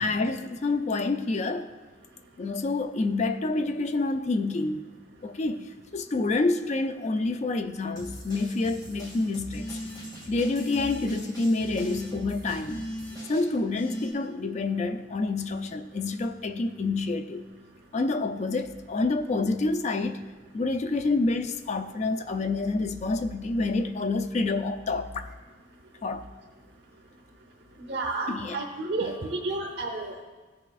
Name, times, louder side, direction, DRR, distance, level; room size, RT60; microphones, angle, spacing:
voice 1, 0.0-1.7 2.4-4.9 5.2-9.8 10.3-12.8 13.3-17.5 17.9-20.2 20.5-25.3 26.0-26.3 28.3-28.6 29.0-29.1, left 3 dB, 40° left, 0.4 m, -28 dB
sound 1, 8.0-13.5, equal, 20° left, 2.0 m, -44 dB
sound 2, 9.5-10.2 10.6-11.1 11.6-12.2 12.6-13.2 13.7-14.1, equal, 90° left, 1.9 m, -37 dB
voice 2, 27.9-30.1, right 3 dB, 70° right, 0.9 m, -31 dB
15.5 x 5.7 x 2.4 m
head